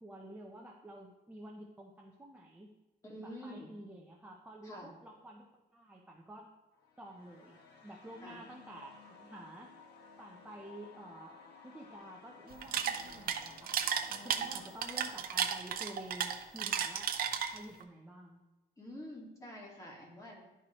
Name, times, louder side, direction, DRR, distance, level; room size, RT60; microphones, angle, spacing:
voice 1, 0.0-2.7 3.2-5.4 5.7-6.5 7.0-9.7 10.2-11.4 11.6-13.7 14.2-17.1 17.4-18.4, right 1 dB, 10° right, -2 dB, 0.6 m, -50 dB
voice 2, 3.0-3.7 4.6-4.9 8.2-8.4 14.1-14.7 18.8-20.4, equal, 20° left, -3 dB, 1.9 m, -48 dB
sound 1, 6.7-17.8, left 5 dB, 65° left, 1.2 m, -57 dB
sound 2, 12.5-17.8, right 8 dB, 55° right, 0.6 m, -34 dB
11.5 x 4.6 x 3.0 m, 1.1 s
cardioid pair, 155°, 18 cm